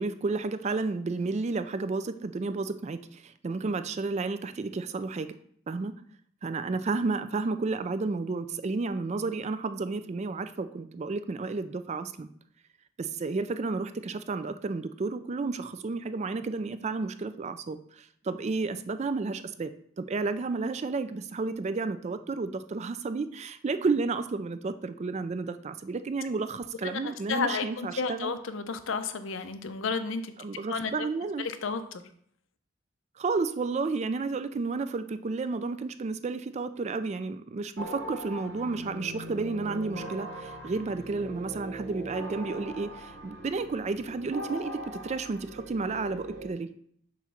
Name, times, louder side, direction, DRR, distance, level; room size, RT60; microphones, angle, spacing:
voice 1, 0.0-5.3 5.7-6.0 6.4-12.3 13.0-19.7 20.0-28.4 30.4-31.4 33.2-46.7, right 3 dB, 35° right, 11 dB, 0.3 m, -32 dB
voice 2, 26.8-30.3 30.7-31.1 31.4-32.0, left 5 dB, 70° left, 10 dB, 0.6 m, -32 dB
sound 1, 37.8-46.5, right 1 dB, 65° right, 1.3 m, -41 dB
7.4 x 3.1 x 5.8 m, 0.64 s
head